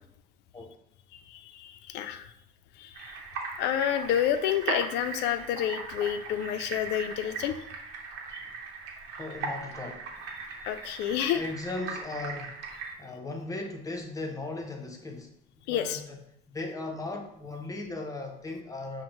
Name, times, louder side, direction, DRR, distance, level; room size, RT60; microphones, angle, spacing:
voice 1, 1.1-2.3 2.8-3.1 3.6-7.5 8.3-8.4 10.6-11.4 15.7-16.0, left 10 dB, 90° left, 9 dB, 0.4 m, -29 dB
sound 1, 2.9-12.9, right 4 dB, 90° right, 0.8 m, -38 dB
voice 2, 9.2-10.1 11.3-12.6 13.0-15.3 15.7-16.2 16.5-19.0, left 2 dB, 20° left, 2 dB, 0.7 m, -37 dB
6.3 x 2.1 x 3.0 m, 0.75 s
cardioid pair, 110°, 17 cm